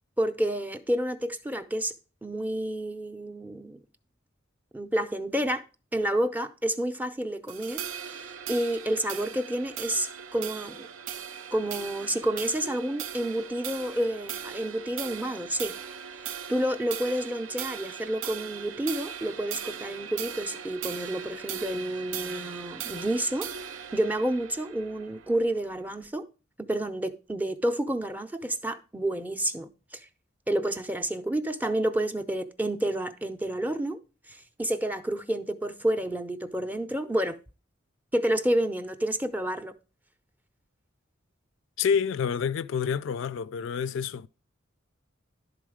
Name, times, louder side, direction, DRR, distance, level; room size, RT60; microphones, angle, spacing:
voice 1, 0.2-1.9 2.2-3.8 4.7-5.6 5.9-10.9 11.5-15.7 16.5-23.5 23.9-26.2 26.6-30.0 30.5-34.0 34.3-37.4 38.1-39.7, right 1 dB, 10° right, 0.5 m, -29 dB
sound 1, 7.5-26.1, right 8 dB, 70° right, 0.4 m, -39 dB
voice 2, 41.8-44.3, left 7 dB, 70° left, 0.3 m, -28 dB
11.0 x 3.9 x 4.9 m
head